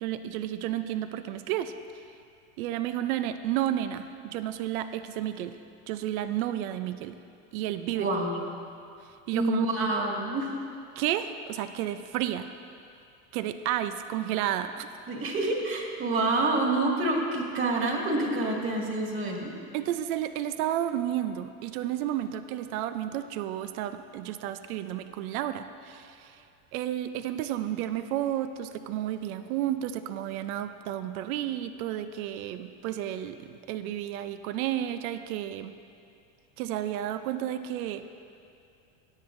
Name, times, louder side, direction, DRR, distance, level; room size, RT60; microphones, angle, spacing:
voice 1, 0.0-1.7 2.6-5.6 5.9-7.2 7.5-8.1 9.3-9.6 11.0-12.5 13.3-14.9 19.7-26.4 26.7-35.7 36.6-38.1, right 12 dB, 75° right, 10 dB, 0.6 m, -32 dB
voice 2, 8.0-8.5 9.3-10.5 15.1-19.5, right 2 dB, 30° right, -1 dB, 2.1 m, -27 dB
17.0 x 10.5 x 2.6 m, 2.5 s
supercardioid pair, 110°, 43 cm